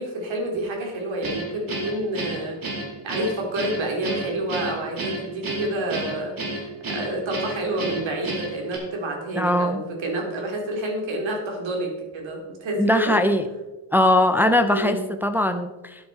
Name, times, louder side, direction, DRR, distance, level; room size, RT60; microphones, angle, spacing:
voice 1, 0.0-2.6 3.0-13.2 14.7-15.0, right 1 dB, 65° right, 1 dB, 3.2 m, -29 dB
Guitar, 1.2-8.8, right 1 dB, 45° right, 3.2 m, -31 dB
voice 2, 9.4-9.8 12.8-13.5 13.9-16.1, left 1 dB, 5° right, 7 dB, 0.4 m, -20 dB
12.5 x 9.6 x 4.1 m, 1.1 s
wide cardioid pair, 175°, 49 cm